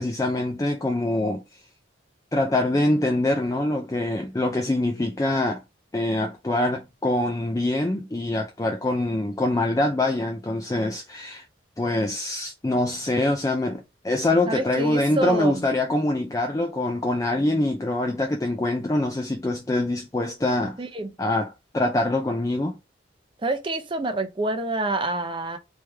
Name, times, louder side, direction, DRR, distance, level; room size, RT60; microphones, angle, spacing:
voice 1, 0.0-1.4 2.3-5.6 5.9-11.4 11.8-20.8 21.2-22.8, left 1 dB, 15° left, 0.4 m, -24 dB
voice 2, 14.5-15.5 20.8-21.1 23.4-25.6, right 2 dB, 25° right, 0.6 m, -27 dB
3.2 x 3.2 x 3.3 m
head